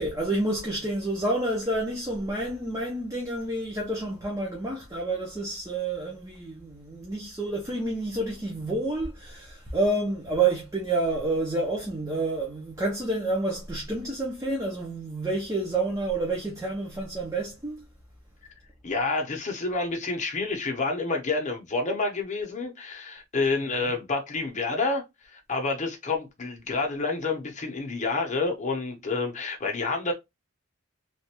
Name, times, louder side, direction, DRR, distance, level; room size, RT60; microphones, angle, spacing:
voice 1, 0.0-17.8 23.7-23.9, right 2 dB, 15° right, 0.8 m, -29 dB
voice 2, 18.8-25.0 25.3-30.1, left 3 dB, 35° left, 0.9 m, -28 dB
3.4 x 2.5 x 2.8 m
head